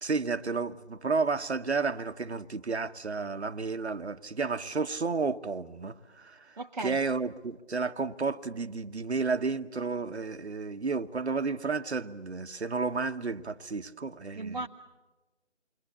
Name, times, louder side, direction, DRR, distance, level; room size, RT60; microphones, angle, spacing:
voice 1, 0.0-6.5 6.8-14.6, right 4 dB, 70° right, 1.3 m, -32 dB
voice 2, 6.6-7.0 14.3-14.7, right 3 dB, 40° right, 0.8 m, -36 dB
29.0 x 22.5 x 8.5 m
figure-of-eight pair, 160°, 35 cm